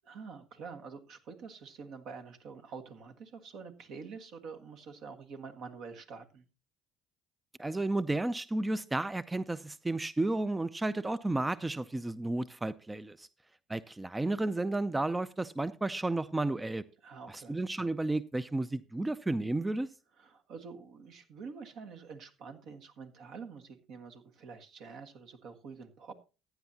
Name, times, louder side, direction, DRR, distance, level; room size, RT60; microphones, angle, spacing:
voice 1, 0.0-6.4 17.0-17.6 20.1-26.1, right 5 dB, 65° right, 1.6 m, -47 dB
voice 2, 7.6-13.3 13.7-16.8 17.5-19.9, right 2 dB, 15° right, 0.5 m, -32 dB
15.0 x 9.4 x 2.8 m
supercardioid pair, 70°, 0 cm